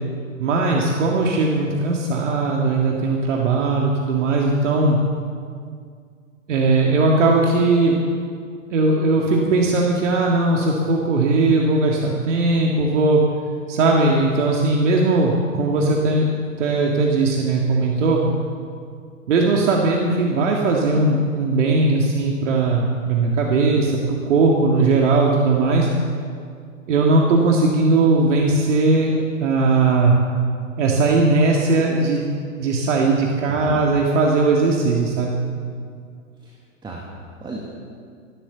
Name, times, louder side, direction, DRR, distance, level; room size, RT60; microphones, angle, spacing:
voice 1, 0.4-5.0 6.5-8.0 8.7-13.2 13.7-16.3 16.6-18.2 19.3-25.9 26.9-30.1 30.8-32.2 32.6-35.4, right 3 dB, 65° right, -1 dB, 2.1 m, -18 dB
voice 2, 33.5-33.8 36.3-37.7, right 2 dB, 10° right, -2 dB, 1.9 m, -36 dB
14.0 x 12.0 x 7.0 m, 2.2 s
hypercardioid pair, 115°, 39 cm